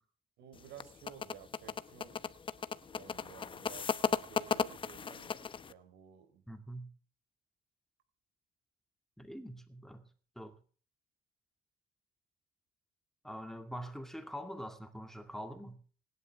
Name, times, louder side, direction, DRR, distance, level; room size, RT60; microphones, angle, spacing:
voice 1, 0.4-5.4 5.6-6.4, right 8 dB, 85° right, 9 dB, 4.2 m, -54 dB
sound 1, 0.6-5.7, left 6 dB, 30° left, 0.9 m, -35 dB
voice 2, 6.5-6.9 9.2-10.0 10.4-10.6 13.2-15.8, equal, ahead, 6 dB, 2.2 m, -44 dB
26.0 x 11.0 x 3.6 m, 0.42 s
cardioid pair, 110°, 17 cm